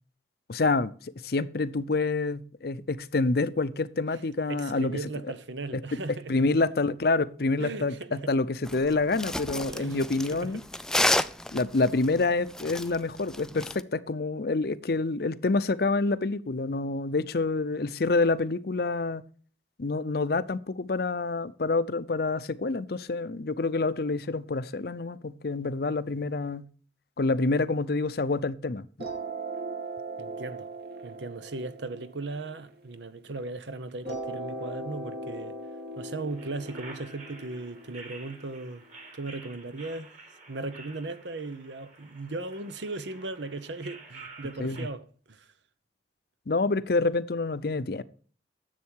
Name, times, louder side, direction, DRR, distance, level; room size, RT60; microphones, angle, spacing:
voice 1, 0.5-5.0 5.7-10.6 11.5-19.2 19.8-26.7 27.2-28.8 44.6-44.9 46.5-48.0, left 3 dB, 55° left, 0.6 m, -27 dB
voice 2, 4.5-6.5 7.6-8.3 9.7-10.1 10.3-10.5 11.1-11.4 30.2-30.7 31.0-35.6 36.0-38.8 39.1-40.1 40.5-45.5, right 3 dB, 85° right, 0.9 m, -37 dB
sound 1, 8.6-13.8, left 1 dB, 5° left, 0.3 m, -30 dB
sound 2, 29.0-33.4 34.0-39.0, right 2 dB, 60° right, 2.2 m, -39 dB
sound 3, 36.3-44.9, right 3 dB, 40° right, 2.6 m, -49 dB
10.5 x 7.6 x 4.6 m
head